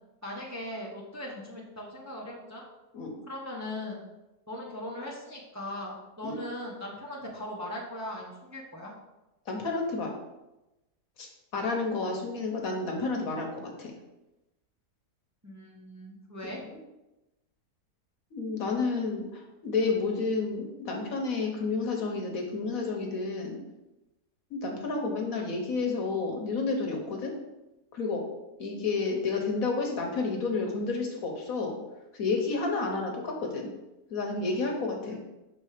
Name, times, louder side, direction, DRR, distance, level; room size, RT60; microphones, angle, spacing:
voice 1, 0.2-2.6 3.3-4.0 4.5-8.9 15.4-16.6 35.1-35.2, left 1 dB, 10° right, -3 dB, 0.9 m, -39 dB
voice 2, 9.5-10.1 11.2-13.9 16.4-16.5 18.3-23.6 24.5-27.3 27.9-28.2 28.6-31.7 32.1-33.7 34.1-35.2, left 3 dB, 60° left, 1 dB, 1.4 m, -30 dB
6.2 x 4.1 x 5.0 m, 0.99 s
omnidirectional pair, 1.7 m